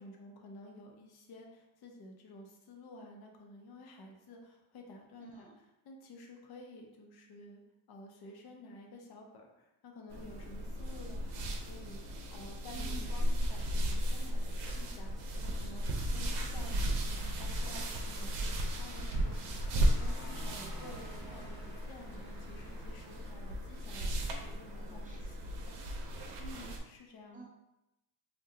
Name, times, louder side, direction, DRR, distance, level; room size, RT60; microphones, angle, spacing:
voice 1, 0.0-7.6 7.9-27.4, left 2 dB, 70° left, 1 dB, 0.6 m, -52 dB
voice 2, 5.2-5.5 12.7-13.3 16.1-16.2 16.5-16.7 20.5-21.0 24.7-25.9 27.3-27.4, right 1 dB, 20° right, -4 dB, 0.3 m, -53 dB
sound 1, 10.1-26.8, equal, 80° right, 0.6 m, -35 dB
sound 2, 16.5-23.8, right 1 dB, 25° left, 0.8 m, -51 dB
2.7 x 2.2 x 3.7 m, 0.94 s
wide cardioid pair, 180°, 40 cm